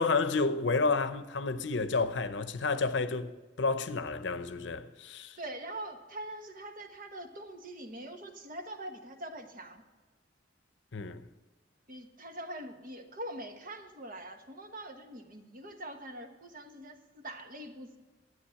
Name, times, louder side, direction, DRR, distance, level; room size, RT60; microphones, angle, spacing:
voice 1, 0.0-5.4 10.9-11.2, left 4 dB, 70° left, 0.7 m, -30 dB
voice 2, 5.4-9.8 11.9-18.0, right 1 dB, 50° right, 1.3 m, -43 dB
11.5 x 9.3 x 5.8 m
head